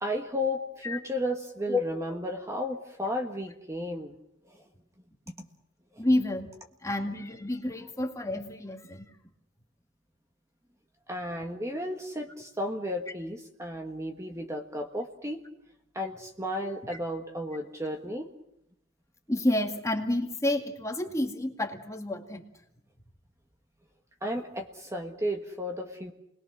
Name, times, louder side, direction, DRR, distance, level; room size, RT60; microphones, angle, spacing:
voice 1, 0.0-4.1 4.5-4.6 5.4-5.5 11.1-15.4 15.9-18.3 24.2-26.1, equal, 15° right, 3 dB, 1.5 m, -33 dB
voice 2, 6.0-6.5 6.8-9.1 19.3-22.4, left 1 dB, 15° left, 3 dB, 2.2 m, -29 dB
29.5 x 21.0 x 6.3 m, 0.82 s
head